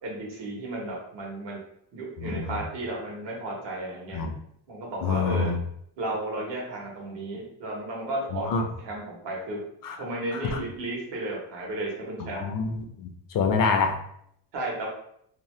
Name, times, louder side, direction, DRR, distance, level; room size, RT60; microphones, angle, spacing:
voice 1, 0.0-1.6 1.9-4.2 4.7-5.5 6.0-8.5 8.8-9.6 10.0-12.5 14.5-14.9, right 2 dB, 75° right, -2 dB, 1.2 m, -33 dB
voice 2, 2.2-2.6 4.1-4.3 5.0-5.6 8.3-8.6 9.8-10.0 10.3-10.6 12.2-14.0, left 5 dB, 50° left, 5 dB, 0.5 m, -27 dB
2.8 x 2.1 x 3.1 m, 0.71 s
cardioid pair, 120°, 44 cm